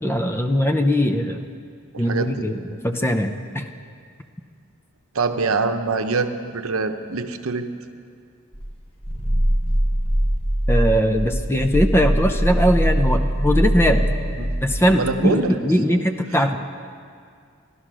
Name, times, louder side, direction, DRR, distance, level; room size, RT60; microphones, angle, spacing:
voice 1, 0.0-1.5 2.0-3.7 10.7-14.0 14.6-16.6, equal, 10° left, 6 dB, 0.5 m, -20 dB
voice 2, 1.9-2.5 5.1-7.7 14.4-14.6 14.9-15.6, right 4 dB, 80° right, 7 dB, 0.8 m, -24 dB
Growling, 8.5-14.9, equal, 25° left, 1.2 m, -22 dB
14.5 x 11.5 x 6.1 m, 2.3 s
head